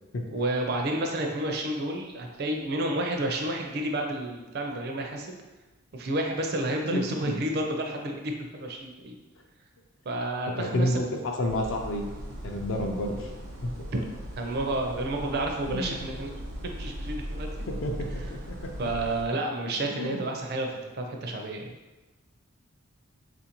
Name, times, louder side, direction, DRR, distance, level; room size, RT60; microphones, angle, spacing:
voice 1, 0.3-5.4 5.9-9.2 10.1-11.0 14.4-16.4 16.8-17.7 18.8-21.7, right 1 dB, 50° right, 2 dB, 0.4 m, -30 dB
voice 2, 10.6-12.1 12.4-13.3 13.6-13.7 15.6-16.0 17.7-18.6 19.8-20.3, left 1 dB, 60° left, 2 dB, 0.5 m, -30 dB
sound 1, 11.5-19.3, equal, 80° right, 0.8 m, -39 dB
3.7 x 2.5 x 2.9 m, 1.1 s
head